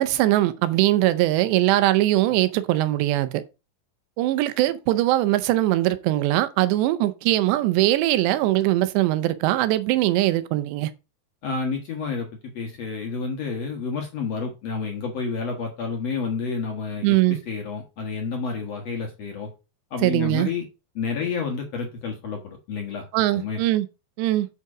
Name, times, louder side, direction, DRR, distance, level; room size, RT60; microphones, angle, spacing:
voice 1, 0.0-3.4 4.2-10.9 17.0-17.4 20.0-20.5 23.1-23.9 24.2-24.5, right 15 dB, 90° right, 2.9 m, -21 dB
voice 2, 11.4-12.3 12.5-19.5 19.9-20.7 20.9-23.1 23.3-23.6, left 5 dB, 65° left, 1.7 m, -30 dB
8.1 x 5.4 x 4.8 m
omnidirectional pair, 4.9 m